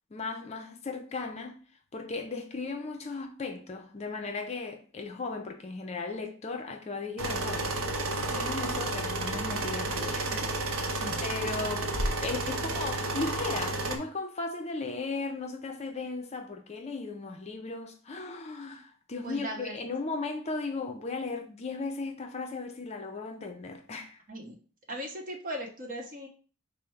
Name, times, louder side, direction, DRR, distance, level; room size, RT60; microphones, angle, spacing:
voice 1, 0.1-1.6 1.9-11.9 12.2-24.2, left 3 dB, 30° left, 0.5 m, -36 dB
sound 1, 7.2-14.0, right 2 dB, 80° right, 0.7 m, -31 dB
voice 2, 19.2-19.7 24.3-24.6 24.9-26.3, equal, 40° right, 1.0 m, -38 dB
5.0 x 2.0 x 4.3 m
head